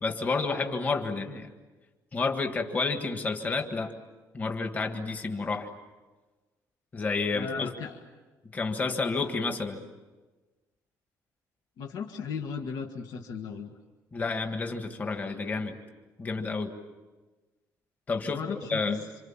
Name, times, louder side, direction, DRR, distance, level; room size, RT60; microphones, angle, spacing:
voice 1, 0.0-1.5 2.1-3.9 4.3-5.7 6.9-7.7 8.5-9.8 14.1-15.8 16.2-16.7 18.1-18.4 18.7-19.0, left 4 dB, 25° left, 5 dB, 1.7 m, -30 dB
voice 2, 7.3-8.0 11.8-13.7 18.2-19.0, left 6 dB, 70° left, 3 dB, 1.8 m, -36 dB
28.0 x 26.5 x 7.4 m, 1.3 s
cardioid pair, 165°, 7 cm